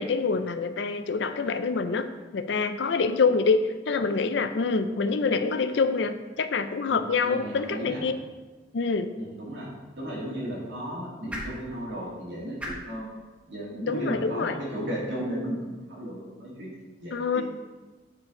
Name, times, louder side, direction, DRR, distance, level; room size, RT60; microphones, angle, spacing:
voice 1, 0.0-2.1 2.3-8.2 8.7-9.1 13.9-14.6 17.1-17.4, left 4 dB, 85° left, 10 dB, 0.5 m, -26 dB
voice 2, 6.9-8.0 9.2-13.1 13.5-17.4, equal, 90° right, -4 dB, 2.3 m, -35 dB
sound 1, 9.5-15.7, equal, 5° right, 1.0 m, -45 dB
8.6 x 4.8 x 3.8 m, 1.3 s
head